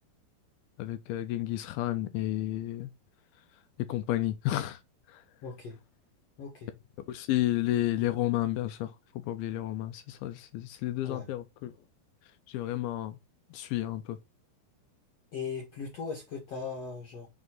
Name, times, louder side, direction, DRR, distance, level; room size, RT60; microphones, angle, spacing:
voice 1, 0.8-2.9 3.8-4.8 5.1-5.2 7.1-11.7 12.5-13.2 13.5-14.2, left 14 dB, 80° left, 2.2 m, -31 dB
voice 2, 5.4-5.8 6.4-6.7 11.0-11.3 15.3-17.3, left 5 dB, 60° left, 1.7 m, -38 dB
7.2 x 3.6 x 3.9 m
omnidirectional pair, 4.8 m